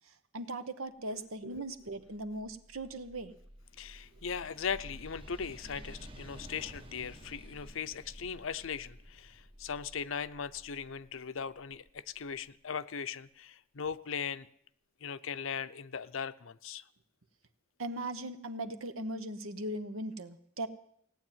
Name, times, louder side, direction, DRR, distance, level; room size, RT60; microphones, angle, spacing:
voice 1, 0.3-3.4 17.8-20.7, right 1 dB, 75° right, 1.2 m, -39 dB
sound 1, 1.7-12.4, equal, 25° right, 1.0 m, -52 dB
voice 2, 3.8-14.5 15.0-16.8, left 6 dB, 65° left, 0.6 m, -39 dB
17.5 x 9.1 x 9.1 m
head